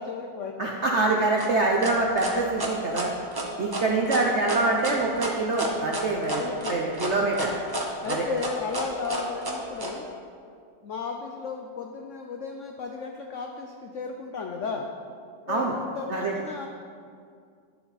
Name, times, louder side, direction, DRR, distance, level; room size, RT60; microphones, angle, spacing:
voice 1, 0.0-0.8 5.9-6.7 8.0-10.1 10.8-14.9 15.5-16.7, left 5 dB, 80° left, 3 dB, 0.6 m, -34 dB
voice 2, 0.6-3.1 3.6-6.4 6.7-7.6 8.1-8.3 15.5-15.7 16.1-16.3, right 2 dB, 65° right, -1 dB, 0.7 m, -25 dB
sound 1, 1.4-9.9, right 1 dB, 30° right, 0.4 m, -31 dB
11.0 x 7.0 x 4.0 m, 2.3 s
omnidirectional pair, 2.0 m